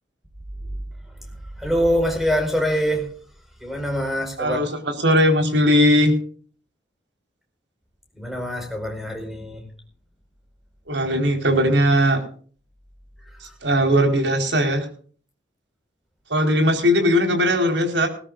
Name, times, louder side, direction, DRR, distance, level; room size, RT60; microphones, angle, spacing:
voice 1, 1.6-3.1 3.6-4.6 8.2-9.6, equal, ahead, 3 dB, 5.0 m, -24 dB
voice 2, 4.4-6.1 10.9-12.2 13.6-14.8 16.3-18.1, equal, 70° right, 4 dB, 4.7 m, -19 dB
19.5 x 19.0 x 2.6 m, 0.44 s
head